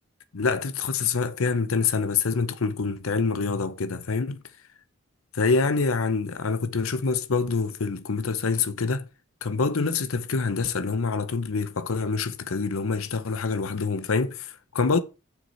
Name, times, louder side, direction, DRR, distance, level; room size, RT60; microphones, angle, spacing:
voice 1, 0.3-4.4 5.3-9.1 9.4-15.0, left 4 dB, 85° left, 0.7 m, -26 dB
6.9 x 4.8 x 5.6 m
head